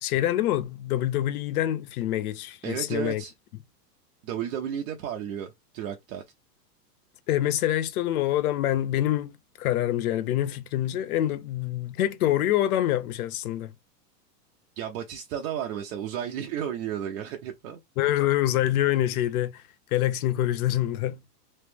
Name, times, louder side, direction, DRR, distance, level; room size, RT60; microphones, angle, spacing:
voice 1, 0.0-3.2 7.3-13.7 18.0-19.6 19.9-21.2, left 13 dB, 65° left, 0.8 m, -26 dB
voice 2, 2.6-3.3 4.2-6.2 14.8-17.8, right 9 dB, 55° right, 0.8 m, -33 dB
3.3 x 2.9 x 3.4 m
supercardioid pair, 140°, 48 cm